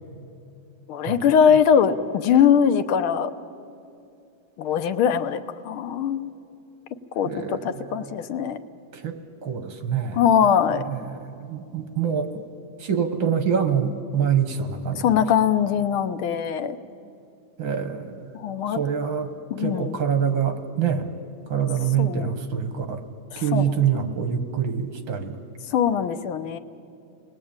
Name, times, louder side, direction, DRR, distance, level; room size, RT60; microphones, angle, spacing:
voice 1, 0.9-3.3 4.6-6.3 7.2-8.6 10.2-10.8 14.9-16.8 18.4-18.8 19.5-20.0 22.0-22.3 23.3-24.1 25.7-26.6, left 8 dB, 90° left, 10 dB, 1.8 m, -21 dB
voice 2, 7.2-8.1 8.9-10.3 10.7-12.3 12.8-15.2 17.6-18.3 18.7-19.3 19.6-21.1 21.5-23.0 23.4-25.4, right 7 dB, 70° right, 8 dB, 2.2 m, -25 dB
29.5 x 20.0 x 8.8 m, 2.7 s
omnidirectional pair, 2.2 m